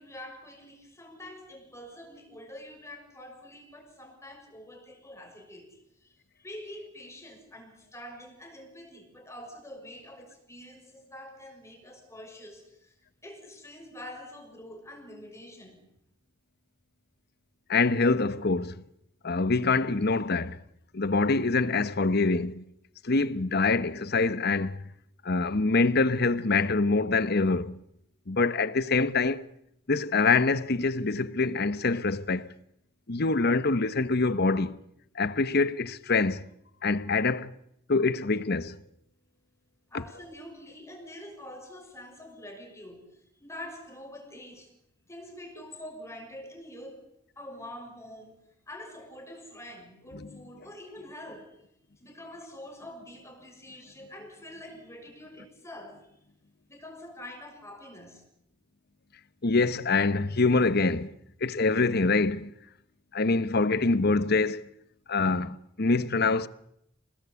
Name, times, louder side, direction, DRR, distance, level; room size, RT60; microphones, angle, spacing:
voice 1, 0.0-6.1 6.4-12.9 13.2-15.8 39.9-43.0 43.4-44.7 45.1-47.0 47.4-48.4 48.7-51.6 52.0-56.0 56.7-58.2, left 1 dB, 15° left, 6.4 m, -45 dB
voice 2, 17.7-18.8 19.2-20.6 20.9-22.6 23.0-24.9 25.2-27.8 28.3-29.5 29.9-32.5 33.1-34.8 35.1-36.5 36.8-37.5 37.9-38.8 39.9-40.0 50.1-50.3 59.4-61.1 61.4-62.5 63.1-64.6 65.1-66.5, left 3 dB, 55° left, 1.0 m, -25 dB
28.0 x 19.0 x 8.3 m
head